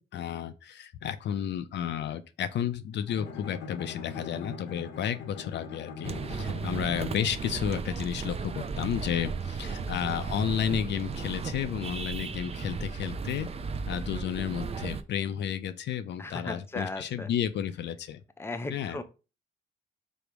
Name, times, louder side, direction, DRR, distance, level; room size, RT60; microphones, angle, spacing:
voice 1, 0.0-13.5 13.9-18.2 18.7-19.0, left 9 dB, 60° left, 0.4 m, -32 dB
Bowed string instrument, 3.1-7.4, left 5 dB, 90° left, 0.8 m, -41 dB
sound 1, 6.0-15.0, right 5 dB, 30° right, 0.4 m, -35 dB
voice 2, 9.6-10.0 16.2-17.3 18.4-19.0, left 2 dB, 10° left, 0.6 m, -37 dB
5.1 x 2.0 x 4.6 m
cardioid pair, 90°, 20 cm